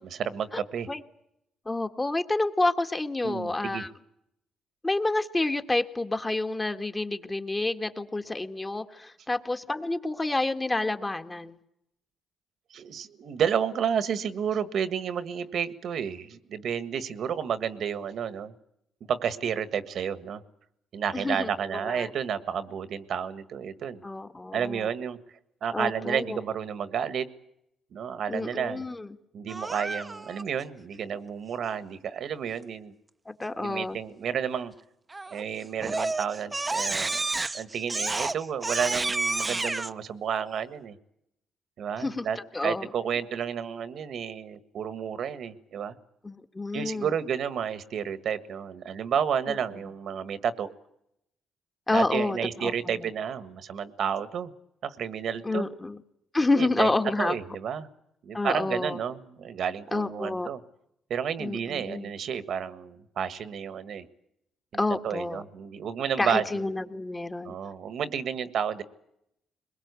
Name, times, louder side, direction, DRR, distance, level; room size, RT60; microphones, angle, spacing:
voice 1, 0.2-0.9 3.2-3.8 12.7-18.5 19.1-20.4 20.9-24.0 24.5-25.2 25.6-27.3 27.9-28.8 29.3-32.9 33.6-34.7 35.3-37.2 37.5-40.9 41.8-45.9 46.7-50.7 51.9-54.5 54.8-55.7 56.6-57.9 58.2-60.6 61.1-64.0 64.7-66.6 67.4-68.8, right 8 dB, 65° right, 12 dB, 1.6 m, -31 dB
voice 2, 1.6-3.9 4.8-11.6 21.1-22.1 24.0-24.9 25.7-26.4 28.3-29.1 33.3-34.0 42.0-42.9 46.2-47.1 49.5-49.6 51.9-53.0 55.4-56.0 56.3-57.4 58.3-59.0 59.9-60.5 61.4-62.1 64.8-65.4 66.2-67.5, left 2 dB, 20° left, 7 dB, 1.7 m, -29 dB
Crying sobbing, 29.5-30.4 35.1-35.4 35.8-39.9, right 3 dB, 20° right, 0.9 m, -30 dB
22.0 x 21.5 x 8.3 m, 0.79 s
cardioid pair, 90°, 0 cm